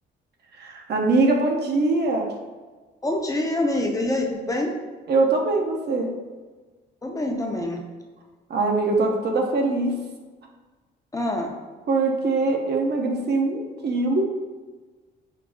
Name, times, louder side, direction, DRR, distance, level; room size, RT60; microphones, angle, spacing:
voice 1, 0.6-2.3 5.1-6.2 8.5-10.0 11.9-14.3, right 3 dB, 55° right, 2 dB, 0.7 m, -22 dB
voice 2, 3.0-4.8 7.0-7.9 11.1-11.5, left 1 dB, 15° left, 1 dB, 0.5 m, -25 dB
4.8 x 2.0 x 3.5 m, 1.3 s
cardioid pair, 90°, 20 cm